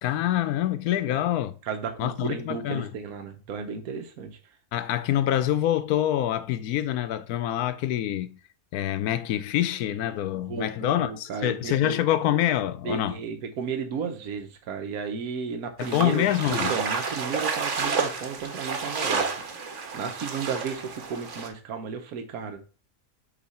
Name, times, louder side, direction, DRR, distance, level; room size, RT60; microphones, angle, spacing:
voice 1, 0.0-1.5 2.0-2.9 4.7-8.4 8.7-13.2 15.8-16.7, left 12 dB, 90° left, 1.1 m, -26 dB
voice 2, 1.7-4.4 10.5-12.0 12.8-19.4 19.9-22.6, right 6 dB, 80° right, 1.4 m, -33 dB
sound 1, 15.8-21.5, right 5 dB, 60° right, 1.3 m, -30 dB
8.2 x 3.0 x 4.1 m
omnidirectional pair, 1.5 m